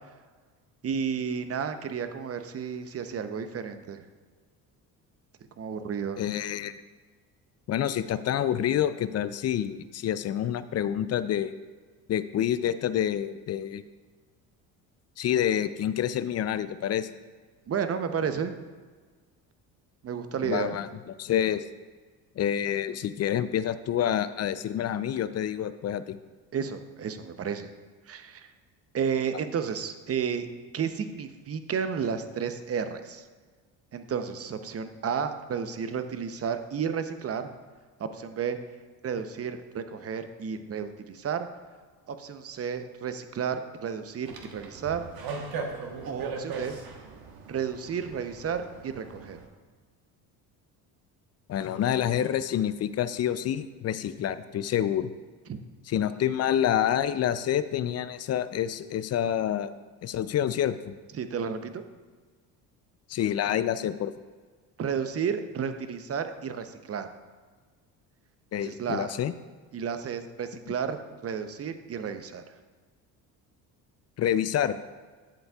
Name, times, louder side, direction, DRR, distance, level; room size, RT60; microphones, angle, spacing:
voice 1, 0.8-4.0 5.6-6.2 17.7-18.5 20.0-20.8 26.5-27.7 28.1-28.5 28.9-30.5 30.7-33.2 33.9-37.5 38.0-38.6 39.0-41.5 42.1-45.0 46.0-46.8 47.5-49.4 55.5-55.6 61.2-61.8 64.8-67.1 68.6-69.1 69.7-72.4, right 7 dB, 30° right, 9 dB, 0.7 m, -32 dB
voice 2, 6.2-6.7 7.7-11.5 12.1-13.8 15.2-17.1 20.4-20.9 21.2-21.6 22.4-26.2 51.5-55.1 55.9-59.7 60.0-61.0 63.1-64.1 68.5-69.3 74.2-74.8, left 10 dB, 35° left, 13 dB, 0.4 m, -27 dB
sound 1, 44.3-49.5, right 4 dB, 55° right, 1.3 m, -39 dB
11.5 x 7.8 x 2.4 m, 1.4 s
hypercardioid pair, 70°, 44 cm